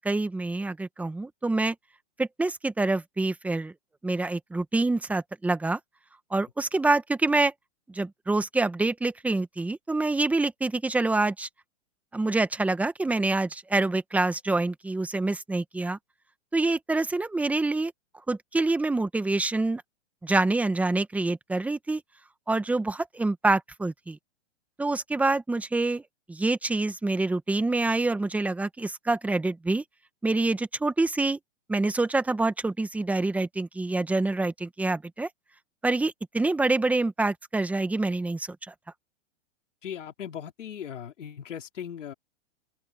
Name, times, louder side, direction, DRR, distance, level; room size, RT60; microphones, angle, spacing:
voice 1, 0.0-1.7 2.2-3.7 4.0-5.8 6.3-7.5 7.9-11.5 12.1-16.0 16.5-17.9 18.3-19.8 20.2-22.0 22.5-24.2 24.8-26.0 26.3-29.8 30.2-31.4 31.7-35.3 35.8-38.7, right 2 dB, 5° right, 1.0 m, -26 dB
voice 2, 39.8-42.1, left 9 dB, 85° left, 3.6 m, -38 dB
open air
hypercardioid pair, 145°, 36 cm